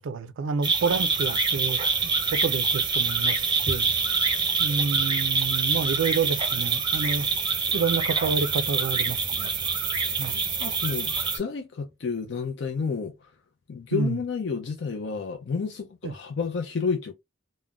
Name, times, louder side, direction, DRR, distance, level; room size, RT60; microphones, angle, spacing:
voice 1, 0.0-3.9 4.6-7.3 7.7-9.5 10.2-10.5 13.9-14.2 16.0-16.1, right 5 dB, 70° right, 0.4 m, -29 dB
sound 1, 0.6-11.4, right 4 dB, 25° right, 0.6 m, -25 dB
voice 2, 10.6-13.3 13.7-17.1, left 5 dB, 60° left, 0.4 m, -30 dB
3.6 x 2.1 x 2.2 m
head